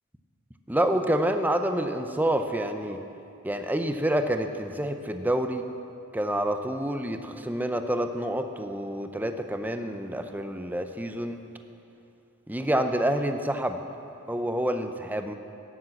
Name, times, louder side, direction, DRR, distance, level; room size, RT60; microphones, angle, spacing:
voice 1, 0.7-3.0 3.4-5.6 6.1-11.4 12.5-13.8 14.3-15.4, right 1 dB, 10° right, 7 dB, 0.6 m, -28 dB
17.0 x 7.3 x 7.6 m, 2.7 s
head